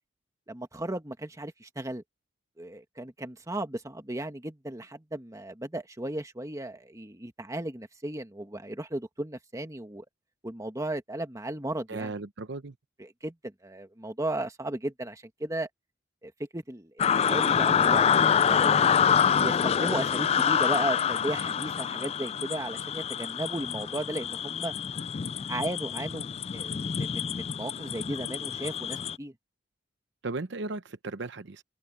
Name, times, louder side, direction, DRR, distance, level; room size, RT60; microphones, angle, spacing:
voice 1, 0.5-2.0 2.6-10.1 10.4-12.1 13.0-15.7 16.2-18.9 19.4-24.7 25.5-29.3, right 1 dB, 15° right, 1.7 m, -35 dB
voice 2, 11.9-12.7 30.2-31.6, right 3 dB, 65° right, 0.8 m, -36 dB
sound 1, 17.0-29.2, left 7 dB, 30° left, 0.3 m, -26 dB
head